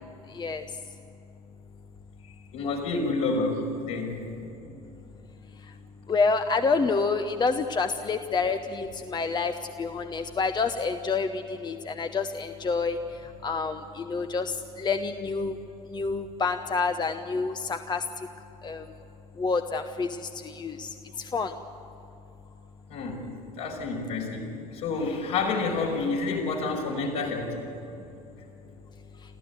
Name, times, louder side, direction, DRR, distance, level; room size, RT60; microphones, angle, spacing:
voice 1, 2.5-4.3 8.0-8.1 22.9-23.3 23.6-27.6, left 3 dB, 65° left, -1 dB, 5.5 m, -29 dB
voice 2, 6.1-9.5 9.8-13.0 13.4-15.6 15.9-18.0 18.6-18.8 19.4-20.1 20.4-20.9 21.2-21.5, left 4 dB, 20° left, 8 dB, 1.0 m, -28 dB
27.0 x 14.5 x 8.3 m, 2.8 s
figure-of-eight pair, 65°, 20 cm